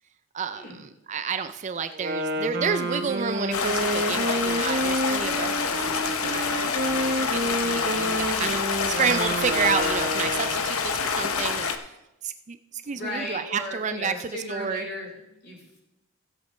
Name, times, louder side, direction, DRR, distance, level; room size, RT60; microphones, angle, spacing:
voice 1, 0.3-12.0 12.2-14.8, right 6 dB, 30° right, 10 dB, 0.3 m, -30 dB
Wind instrument woodwind instrument, 1.9-10.9, right 1 dB, 50° right, 1.1 m, -29 dB
Stream, 3.5-11.8, left 6 dB, 75° left, 0.8 m, -27 dB
voice 2, 12.9-15.8, left 1 dB, 45° left, -3 dB, 4.7 m, -36 dB
16.5 x 8.1 x 3.3 m, 0.92 s
head